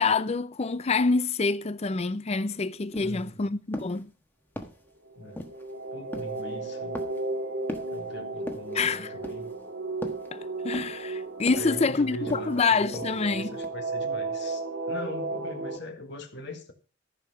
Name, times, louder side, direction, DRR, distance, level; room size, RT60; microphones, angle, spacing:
voice 1, 0.0-4.1 8.7-9.1 10.3-13.5, left 4 dB, 30° left, 0.5 m, -26 dB
sound 1, 2.5-2.6 2.9-3.3 3.7-4.1 4.6-4.9 5.4-5.7 6.1-6.4 6.9-7.3 7.7-8.0 8.5-8.8 9.2-9.6 10.0-10.3 10.7-11.1 11.5-11.8 12.3-12.6 12.9-13.3 13.6-13.7, equal, 10° left, 1.2 m, -39 dB
voice 2, 3.0-3.6 5.2-5.5 5.9-7.0 7.9-9.5 11.6-16.7, left 1 dB, 60° left, 1.9 m, -41 dB
sound 2, 5.1-15.8, right 3 dB, 65° right, 1.9 m, -34 dB
14.0 x 5.7 x 6.0 m
head